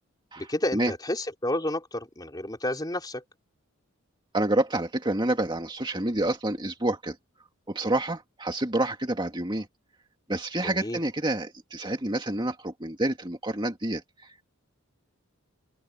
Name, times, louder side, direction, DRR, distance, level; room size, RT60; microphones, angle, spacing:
voice 1, 0.4-3.2 10.6-11.0, left 1 dB, 20° left, 4.0 m, -31 dB
voice 2, 4.3-7.2 7.7-9.7 10.3-14.5, right 1 dB, 20° right, 2.3 m, -28 dB
open air
head